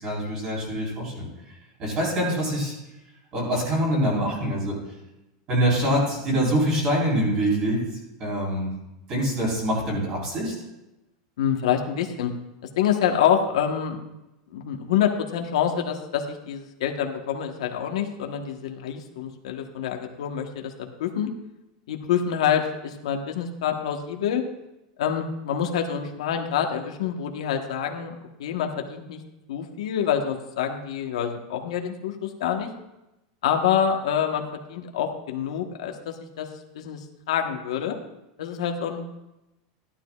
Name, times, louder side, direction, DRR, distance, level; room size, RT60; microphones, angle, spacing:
voice 1, 0.0-2.8 3.3-4.8 5.5-8.7 9.1-10.5, equal, 25° right, -3 dB, 4.0 m, -25 dB
voice 2, 11.4-12.3 12.8-14.0 14.5-21.3 21.9-24.4 25.0-28.1 28.4-29.2 29.5-32.7 33.4-36.5 36.7-38.0 38.4-39.1, left 8 dB, 85° left, 4 dB, 1.2 m, -26 dB
15.0 x 11.5 x 2.4 m, 0.94 s
supercardioid pair, 180°, 3 cm